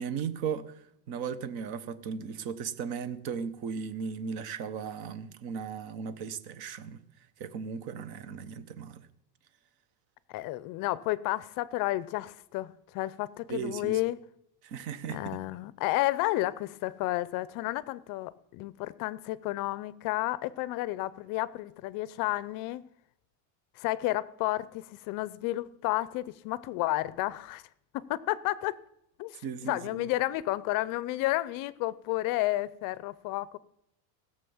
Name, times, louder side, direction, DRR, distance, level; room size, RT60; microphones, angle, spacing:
voice 1, 0.0-7.0 7.4-9.1 13.5-14.0 14.6-15.4 29.4-30.1, right 6 dB, 50° right, 1.1 m, -36 dB
voice 2, 10.3-14.2 15.1-22.9 23.8-27.6 27.9-28.8 29.2-33.6, left 17 dB, 45° left, 0.5 m, -31 dB
16.5 x 6.8 x 7.1 m
cardioid pair, 165°, 48 cm